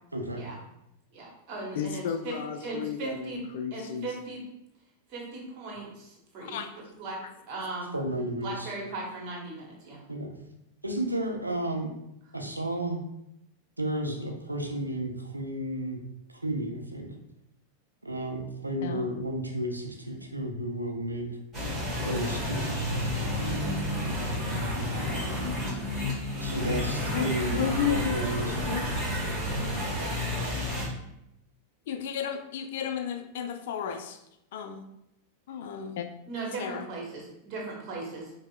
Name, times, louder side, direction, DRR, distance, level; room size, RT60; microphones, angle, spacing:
voice 1, 0.1-0.4 7.9-8.7 10.1-10.3 10.8-11.9 12.3-13.0 13.8-16.0 16.3-17.1 18.0-21.3 22.0-23.3 26.4-28.6, right 1 dB, 85° right, 2 dB, 0.5 m, -32 dB
voice 2, 1.1-2.3 2.6-3.4 3.7-4.4 5.1-6.6 7.0-7.2 7.5-7.9 8.4-10.0 36.2-38.3, right 3 dB, 40° right, -2 dB, 1.0 m, -38 dB
voice 3, 1.8-4.1 6.4-6.7 18.8-19.1 26.8-28.2 28.7-28.8 30.2-30.4 31.9-34.2 34.5-34.9 35.5-36.0 36.6-36.9, left 9 dB, 55° left, 7 dB, 0.3 m, -33 dB
sound 1, 21.5-30.9, left 1 dB, 25° right, 1.4 m, -30 dB
5.2 x 2.0 x 2.3 m, 0.82 s
figure-of-eight pair, 90°, 0 cm